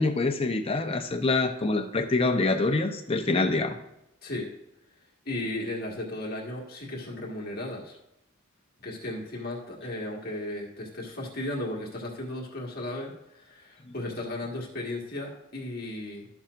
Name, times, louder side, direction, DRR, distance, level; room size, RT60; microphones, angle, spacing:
voice 1, 0.0-3.8 13.8-13.9, left 3 dB, 30° left, 5 dB, 0.7 m, -25 dB
voice 2, 5.2-7.9 8.8-16.3, left 1 dB, 50° left, -2 dB, 1.7 m, -35 dB
12.0 x 7.1 x 2.5 m, 0.87 s
head